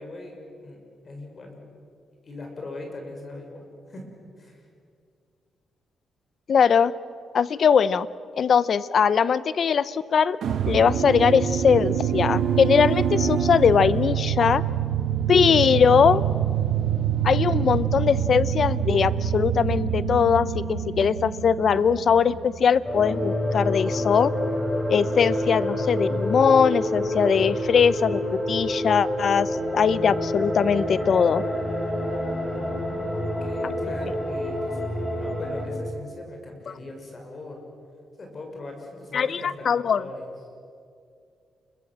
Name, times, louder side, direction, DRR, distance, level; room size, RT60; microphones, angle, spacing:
voice 1, 0.0-1.6 2.2-4.1 4.4-4.6 15.3-15.7 32.5-37.6 38.2-40.3, left 2 dB, 40° left, 2 dB, 6.1 m, -40 dB
voice 2, 6.5-6.9 7.3-8.1 8.4-10.4 10.7-14.6 15.3-16.2 17.2-24.3 24.9-28.2 28.5-31.4 39.1-40.0, left 6 dB, 55° left, 17 dB, 0.8 m, -21 dB
sound 1, 10.4-22.6, right 9 dB, 70° right, 1.6 m, -25 dB
sound 2, 22.8-35.7, left 1 dB, 10° left, 5.7 m, -27 dB
29.5 x 22.5 x 7.5 m, 2.4 s
cardioid pair, 100°, 0 cm